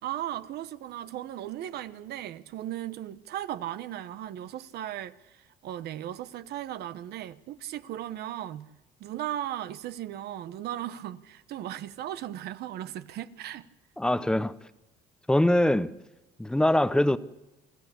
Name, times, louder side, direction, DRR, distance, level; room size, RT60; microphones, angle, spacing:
voice 1, 0.0-8.7 9.0-13.7, right 12 dB, 70° right, 1.1 m, -37 dB
voice 2, 14.0-14.5 15.3-15.9 16.4-17.2, left 1 dB, 5° left, 0.8 m, -23 dB
25.5 x 14.0 x 8.2 m
cardioid pair, 110°, 17 cm